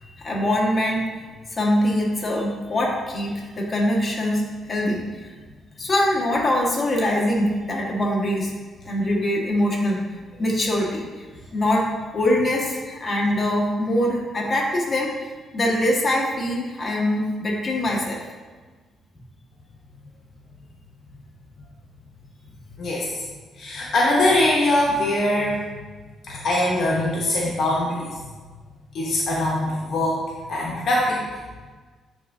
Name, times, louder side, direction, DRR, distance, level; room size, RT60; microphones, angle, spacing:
voice 1, 0.0-1.1 1.6-4.4 4.7-5.3 5.8-8.5 8.8-10.0 10.4-11.3 11.5-18.3, left 1 dB, 30° left, -4 dB, 1.5 m, -23 dB
voice 2, 22.8-23.2 23.6-25.6 26.2-28.1 28.9-30.2 30.5-31.2, left 1 dB, 55° left, -4 dB, 1.1 m, -22 dB
9.8 x 3.6 x 2.7 m, 1.4 s
cardioid pair, 90°, 0 cm